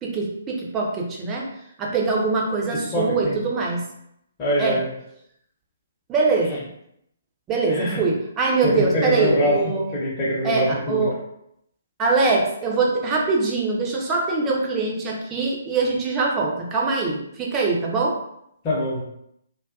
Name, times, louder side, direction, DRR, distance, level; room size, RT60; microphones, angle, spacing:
voice 1, 0.0-1.5 1.8-3.8 4.6-4.8 6.1-6.7 7.5-9.9 10.4-11.1 12.0-18.1, right 3 dB, 20° right, -2 dB, 0.5 m, -23 dB
voice 2, 2.9-3.4 4.4-4.8 7.7-8.0 8.6-11.1 18.6-19.0, equal, 25° left, -7 dB, 0.8 m, -23 dB
2.5 x 2.3 x 2.4 m, 0.76 s
figure-of-eight pair, 130°, 0 cm